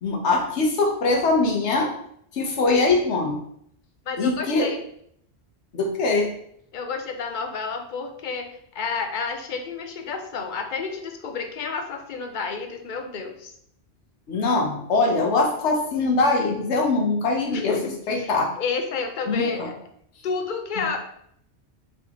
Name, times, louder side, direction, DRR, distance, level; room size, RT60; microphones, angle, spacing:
voice 1, 0.0-1.9 2.3-3.4 4.2-4.7 5.7-6.3 14.3-17.7 18.1-18.5 19.3-19.7 20.8-20.9, left 3 dB, 80° left, 1 dB, 1.2 m, -22 dB
voice 2, 4.1-4.8 6.7-13.5 17.5-19.7 20.2-21.0, left 5 dB, 55° left, 5 dB, 0.6 m, -30 dB
4.4 x 3.2 x 2.9 m, 0.69 s
omnidirectional pair, 1.1 m